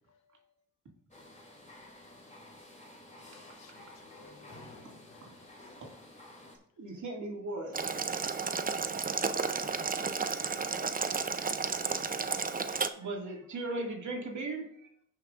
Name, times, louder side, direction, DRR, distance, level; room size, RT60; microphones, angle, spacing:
voice 1, 0.1-0.5, left 6 dB, 60° left, 1.8 m, -75 dB
sound 1, 1.1-6.6, left 1 dB, 20° left, 2.8 m, -52 dB
voice 2, 3.2-5.8, left 6 dB, 80° left, 1.0 m, -60 dB
voice 3, 6.8-8.3 12.6-14.7, right 2 dB, 60° right, 2.4 m, -38 dB
Boiling, 7.7-12.9, right 5 dB, 25° right, 0.7 m, -32 dB
16.0 x 5.8 x 2.6 m
cardioid pair, 65°, 33 cm